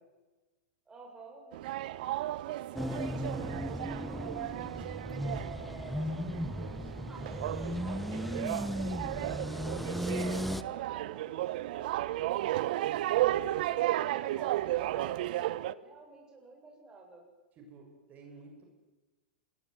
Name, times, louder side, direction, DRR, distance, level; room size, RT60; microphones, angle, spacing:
voice 1, 0.9-4.2 5.1-6.1 7.1-9.3 9.6-12.7 13.5-17.2, right 3 dB, 15° right, 1 dB, 7.4 m, -51 dB
sound 1, 1.5-15.7, right 15 dB, 60° right, 1.0 m, -34 dB
sound 2, 2.8-10.6, left 1 dB, ahead, 1.1 m, -36 dB
voice 2, 17.6-18.6, right 3 dB, 30° right, 2 dB, 7.0 m, -52 dB
28.5 x 22.0 x 9.4 m, 1.2 s
hypercardioid pair, 115°, 5 cm